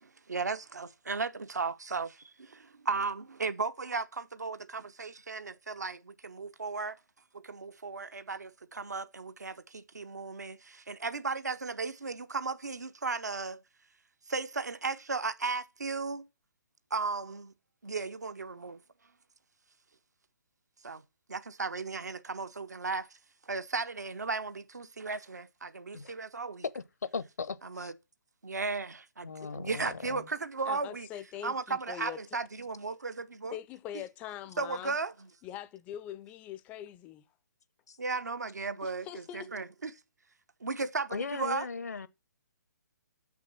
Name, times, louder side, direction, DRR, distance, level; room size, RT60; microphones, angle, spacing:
voice 1, 0.0-7.0 7.3-13.6 14.3-16.3 16.9-17.5 17.8-18.8 20.8-21.0 21.3-23.1 23.4-26.6 27.6-27.9 28.4-31.1 31.4-33.6 34.6-35.3 38.0-39.9 40.6-41.7, right 4 dB, 65° right, 0.8 m, -35 dB
voice 2, 27.1-27.9 29.2-30.3 37.9-38.0 41.1-42.1, left 5 dB, 60° left, 0.8 m, -38 dB
voice 3, 30.7-32.2 33.5-35.0 35.4-37.3 38.6-39.5, left 11 dB, 15° left, 0.5 m, -43 dB
6.5 x 6.1 x 7.1 m
figure-of-eight pair, 135°, 10 cm